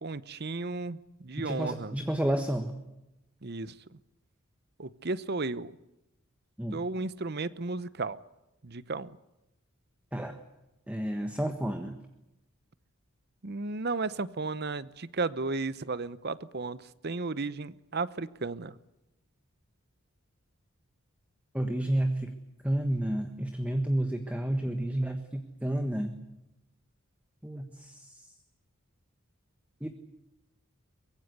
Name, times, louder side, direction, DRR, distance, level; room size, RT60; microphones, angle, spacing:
voice 1, 0.0-2.0 3.4-3.7 4.8-5.8 6.7-8.2 8.6-9.2 13.4-16.8 17.0-18.8, right 3 dB, 50° right, 16 dB, 0.9 m, -34 dB
voice 2, 1.4-2.8 6.6-6.8 10.1-10.4 10.9-12.0 21.5-22.3 22.6-26.2 27.4-28.1 29.8-29.9, right 1 dB, 5° right, 6 dB, 1.4 m, -30 dB
23.5 x 22.0 x 8.2 m, 0.94 s
head